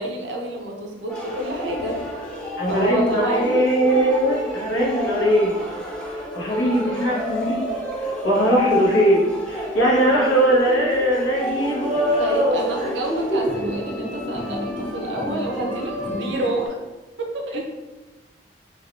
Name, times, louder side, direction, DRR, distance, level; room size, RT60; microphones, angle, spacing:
voice 1, 0.0-2.0 2.7-3.6 12.2-16.8 17.2-17.6, right 1 dB, 70° right, 1 dB, 0.6 m, -28 dB
sound 1, 1.1-16.7, left 1 dB, 5° left, 0.4 m, -30 dB
voice 2, 2.6-5.6 6.3-7.6 8.0-12.7 13.1-13.5, right 1 dB, 90° left, -3 dB, 0.8 m, -20 dB
3.3 x 2.3 x 2.4 m, 1.1 s
head